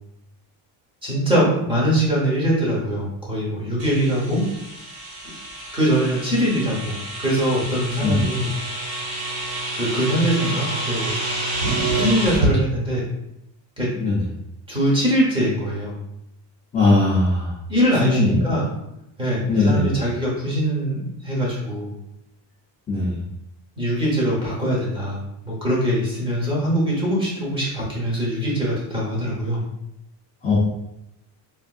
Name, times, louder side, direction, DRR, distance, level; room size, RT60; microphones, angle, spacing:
voice 1, 1.0-4.5 5.7-8.5 9.7-11.1 11.9-13.0 13.8-13.9 14.7-16.0 17.7-18.7 19.2-21.9 23.8-29.6, equal, 10° right, -5 dB, 0.7 m, -22 dB
sound 1, 3.8-12.6, right 2 dB, 50° right, 1.1 m, -28 dB
voice 2, 16.7-17.5 18.0-18.4 19.5-19.9 22.9-23.2 30.4-30.6, left 2 dB, 20° left, -7 dB, 0.3 m, -19 dB
3.5 x 2.4 x 2.3 m, 0.84 s
cardioid pair, 175°, 46 cm